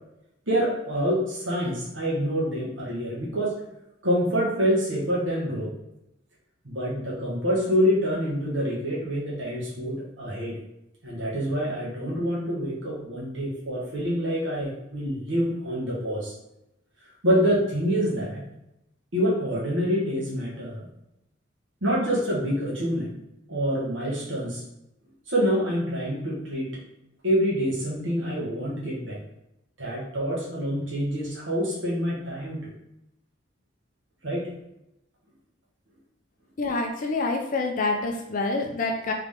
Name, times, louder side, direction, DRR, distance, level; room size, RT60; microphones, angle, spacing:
voice 1, 0.5-3.5 4.0-5.7 6.6-10.6 11.0-16.3 17.2-18.4 19.1-20.9 21.8-23.2 23.5-24.6 25.3-26.7 27.2-29.2 29.8-32.7 34.2-34.5, equal, 80° right, -5 dB, 1.4 m, -26 dB
voice 2, 36.6-39.1, left 3 dB, 45° left, 1 dB, 0.5 m, -27 dB
3.7 x 3.5 x 3.6 m, 0.86 s
head